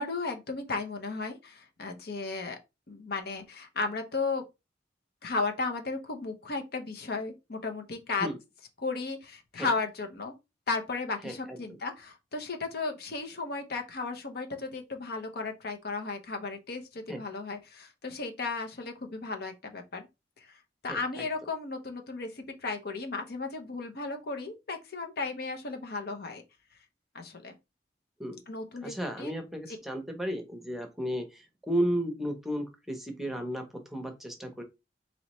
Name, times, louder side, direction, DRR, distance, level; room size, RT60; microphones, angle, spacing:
voice 1, 0.0-2.6 2.9-4.4 5.2-8.3 8.8-10.3 10.7-20.1 20.4-20.6 20.8-26.4 27.1-27.5 28.5-29.3 29.7-29.8, left 3 dB, 60° left, 0.8 m, -35 dB
voice 2, 11.2-11.6 17.1-17.2 20.9-21.3 28.2-28.4 28.8-34.6, equal, ahead, 0.8 m, -34 dB
4.1 x 3.0 x 3.0 m
head